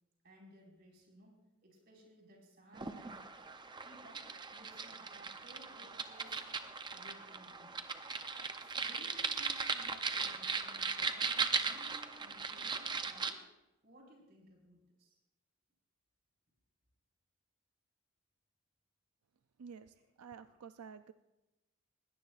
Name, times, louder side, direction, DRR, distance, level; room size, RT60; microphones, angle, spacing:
voice 1, 0.2-3.2 3.8-6.4 6.9-7.8 8.6-13.4 13.8-15.2 20.0-20.1 20.4-20.6, equal, 45° right, -2 dB, 4.8 m, -60 dB
sound 1, 2.7-13.3, right 5 dB, 20° right, 0.6 m, -38 dB
voice 2, 19.6-21.1, right 6 dB, 85° right, 11 dB, 0.4 m, -51 dB
21.0 x 17.0 x 2.5 m, 0.99 s
head